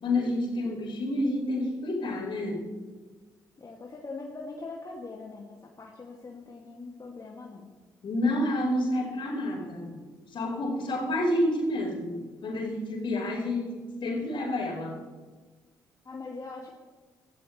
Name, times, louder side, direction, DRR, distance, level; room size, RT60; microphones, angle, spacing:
voice 1, 0.0-2.7 8.0-10.0 10.3-15.0, left 1 dB, 55° left, -1 dB, 4.9 m, -29 dB
voice 2, 3.6-7.7 16.0-16.7, left 3 dB, 35° left, -2 dB, 2.4 m, -42 dB
26.5 x 13.0 x 3.3 m, 1.4 s
hypercardioid pair, 45°, 10 cm